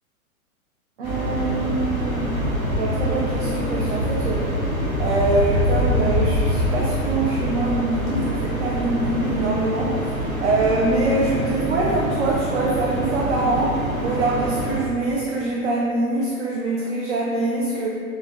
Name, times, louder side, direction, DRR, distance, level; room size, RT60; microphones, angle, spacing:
voice 1, 1.0-2.4 2.7-4.5 5.0-10.1 10.4-17.9, right 2 dB, 55° right, -4 dB, 0.5 m, -24 dB
sound 1, 1.0-14.8, equal, 80° right, 1.0 m, -25 dB
sound 2, 8.1-9.6 10.6-12.1, left 3 dB, 20° left, 0.5 m, -32 dB
3.3 x 2.2 x 2.2 m, 2.2 s
figure-of-eight pair, 105°, 43 cm